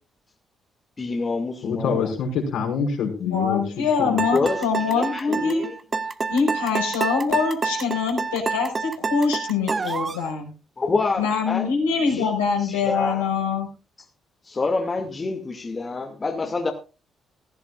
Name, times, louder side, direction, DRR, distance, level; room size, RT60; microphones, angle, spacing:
voice 1, 1.0-2.1 4.3-4.6 4.9-5.7 9.9-10.0 10.8-11.7 12.1-12.3 12.6-13.3 14.5-16.7, left 3 dB, 35° left, 2.3 m, -27 dB
voice 2, 1.6-3.6 4.0-4.2, left 6 dB, 70° left, 5.7 m, -26 dB
voice 3, 3.2-5.8 6.3-10.5 11.2-13.7, left 5 dB, 85° left, 5.3 m, -24 dB
sound 1, 4.2-10.3, right 4 dB, 35° right, 1.4 m, -27 dB
18.0 x 15.0 x 2.5 m
hypercardioid pair, 45°, 0 cm